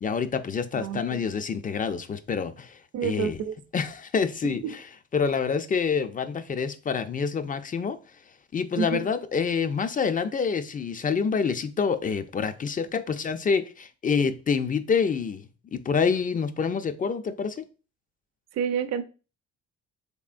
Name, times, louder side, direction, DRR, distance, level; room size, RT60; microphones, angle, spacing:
voice 1, 0.0-3.4 3.7-4.8 5.1-8.0 8.5-15.4 15.7-17.6, left 6 dB, 30° left, 0.4 m, -27 dB
voice 2, 0.8-1.2 2.9-3.5 8.8-9.1 18.5-19.0, right 7 dB, 60° right, 0.5 m, -28 dB
3.6 x 3.5 x 2.5 m
cardioid pair, 90°, 30 cm